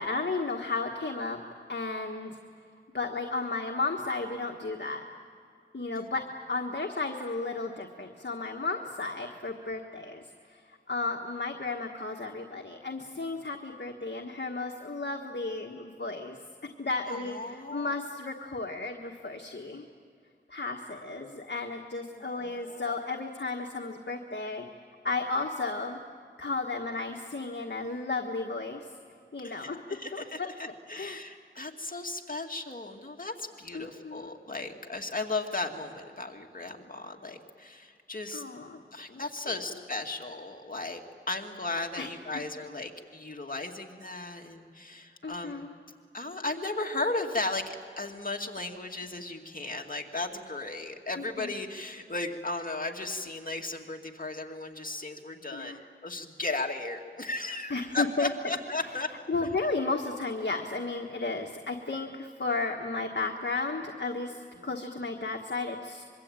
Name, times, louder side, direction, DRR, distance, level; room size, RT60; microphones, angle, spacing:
voice 1, 0.0-1.4 1.7-2.4 2.9-5.0 5.7-16.4 16.8-19.8 20.5-24.6 25.0-26.0 26.4-28.9 29.3-29.8 30.1-30.5 30.9-31.2 33.7-34.3 38.3-38.8 39.1-39.5 41.9-42.1 45.2-45.7 51.2-51.5 55.5-55.9 57.7-58.3 59.3-66.0, left 3 dB, 60° left, 2 dB, 1.6 m, -34 dB
voice 2, 17.1-17.9 22.1-23.0 29.4-38.4 38.9-41.0 41.3-45.7 46.1-59.1 59.4-59.5 64.6-64.7, left 2 dB, 45° left, 2 dB, 2.3 m, -36 dB
25.0 x 23.0 x 9.0 m, 2.4 s
wide cardioid pair, 65°, 20 cm